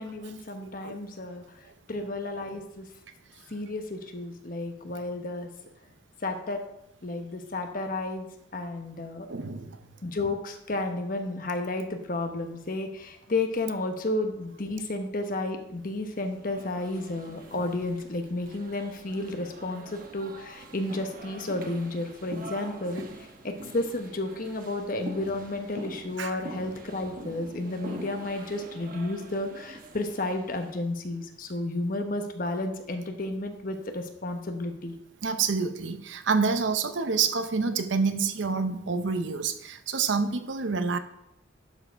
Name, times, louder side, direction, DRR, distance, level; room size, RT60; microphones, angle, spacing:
voice 1, 0.0-1.6 1.9-2.9 3.5-5.5 6.2-6.6 7.0-9.3 10.0-34.9, left 2 dB, 45° left, 5 dB, 1.0 m, -32 dB
voice 2, 0.6-1.0 9.3-9.8 26.2-26.4 35.2-41.0, right 5 dB, 75° right, 9 dB, 0.7 m, -28 dB
sound 1, 16.1-30.8, right 2 dB, 45° right, 1.0 m, -44 dB
11.5 x 4.7 x 4.6 m, 0.82 s
head